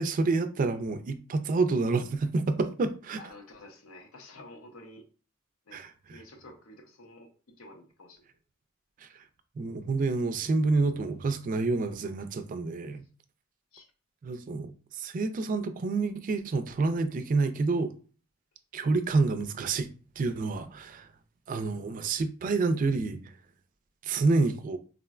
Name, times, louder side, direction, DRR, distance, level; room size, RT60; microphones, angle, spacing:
voice 1, 0.0-3.2 5.7-6.2 9.0-9.1 9.6-13.0 14.2-17.9 18.7-19.9 20.2-21.1 21.5-23.3 24.0-24.8, right 3 dB, 40° right, 0.3 m, -28 dB
voice 2, 3.2-5.0 5.7-8.3 13.7-13.9, left 2 dB, 85° left, 0.7 m, -50 dB
3.7 x 2.1 x 2.3 m
head